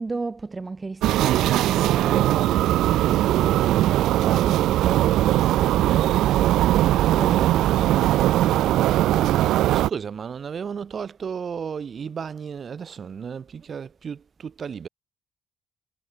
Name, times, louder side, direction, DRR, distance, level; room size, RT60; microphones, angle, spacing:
voice 1, 0.0-6.6 7.1-9.5, right 3 dB, 25° right, 3.4 m, -35 dB
sound 1, 1.0-9.9, right 14 dB, 85° right, 0.3 m, -20 dB
voice 2, 9.7-14.9, right 6 dB, 50° right, 5.8 m, -33 dB
cardioid pair, 90°, 0 cm